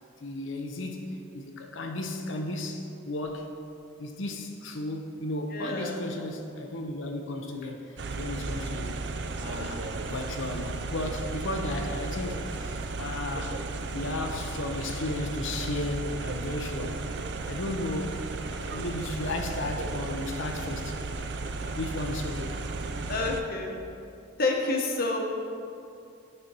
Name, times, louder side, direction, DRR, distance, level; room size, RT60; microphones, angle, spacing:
voice 1, 0.2-3.5 4.0-9.0 9.3-13.6 13.9-17.0 17.4-18.3 18.6-21.0 21.6-22.6, left 2 dB, 65° left, 3 dB, 0.7 m, -34 dB
voice 2, 5.5-6.0 23.1-23.8 24.4-25.2, left 3 dB, 45° left, 1 dB, 1.0 m, -28 dB
sound 1, 8.0-23.4, right 3 dB, 55° right, 0.5 m, -34 dB
9.7 x 4.3 x 6.1 m, 2.5 s
head